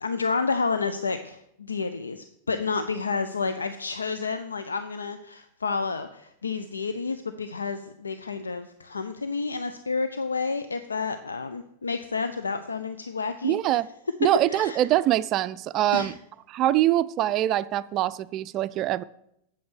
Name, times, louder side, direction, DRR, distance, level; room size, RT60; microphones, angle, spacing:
voice 1, 0.0-13.8 14.5-14.8 15.9-16.1, left 4 dB, 75° left, 10 dB, 0.6 m, -30 dB
voice 2, 13.4-13.9 14.2-16.1 16.5-19.0, right 13 dB, 35° right, 16 dB, 0.4 m, -24 dB
8.5 x 7.8 x 8.0 m, 0.79 s
figure-of-eight pair, 90°, 0 cm